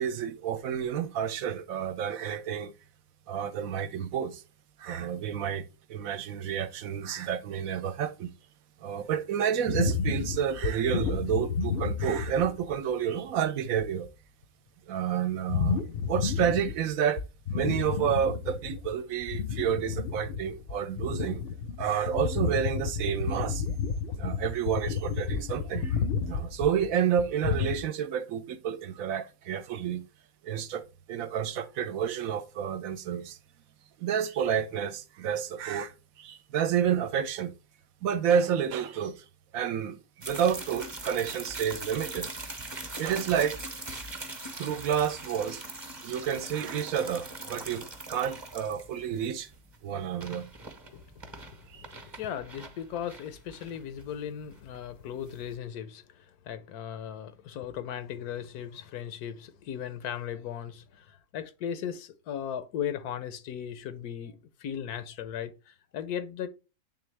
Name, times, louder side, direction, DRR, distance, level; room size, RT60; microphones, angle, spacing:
voice 1, 0.0-2.7 3.3-4.4 4.8-8.3 8.8-14.1 14.9-17.2 17.5-21.4 21.8-23.6 24.2-30.0 30.4-33.4 34.0-37.5 38.0-39.2 39.5-42.3 43.0-43.6 44.6-45.6 45.9-49.5 49.8-50.5 51.7-51.8, right 8 dB, 75° right, 1.0 m, -30 dB
sound 1, 9.7-12.7 13.2-13.3 13.7-14.1 15.5-16.9 17.2-18.9 19.2-27.8, left 6 dB, 60° left, 0.6 m, -31 dB
sound 2, 40.2-55.6, right 2 dB, 25° right, 0.7 m, -42 dB
voice 2, 51.8-66.5, left 9 dB, 90° left, 1.2 m, -37 dB
8.5 x 3.5 x 3.2 m
omnidirectional pair, 1.6 m